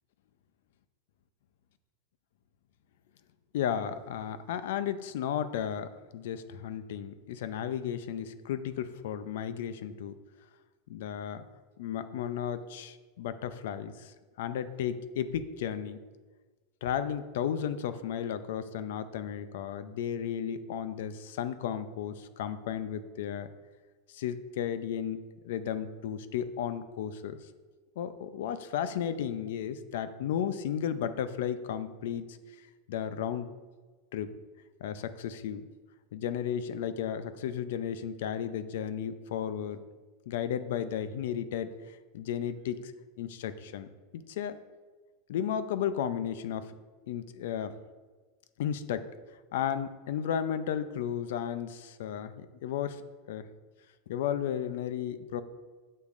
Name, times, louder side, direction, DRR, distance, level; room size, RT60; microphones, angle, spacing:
voice 1, 3.5-10.2 10.9-11.4 11.8-16.0 16.8-23.5 24.1-27.4 28.0-32.4 32.9-33.5 34.1-34.3 34.8-35.7 36.1-39.8 40.3-42.9 43.2-43.9 44.1-44.6 45.3-46.7 47.0-47.8 48.6-49.1 49.5-53.5 54.1-55.4, left 9 dB, 70° left, 12 dB, 0.5 m, -34 dB
8.4 x 6.5 x 2.5 m, 1.3 s
supercardioid pair, 175°, 0 cm